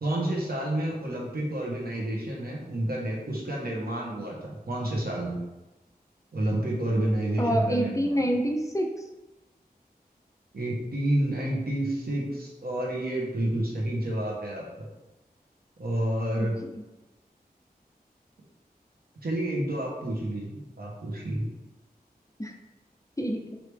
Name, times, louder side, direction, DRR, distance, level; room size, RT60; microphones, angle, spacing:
voice 1, 0.0-5.4 6.3-8.3 10.5-14.6 15.8-16.5 19.2-21.4, right 1 dB, 70° right, -3 dB, 1.2 m, -29 dB
voice 2, 7.4-8.9 16.4-16.5 22.4-22.5 23.2-23.6, equal, 20° left, 2 dB, 0.6 m, -27 dB
4.7 x 2.9 x 3.4 m, 1.0 s
wide cardioid pair, 45°, 16 cm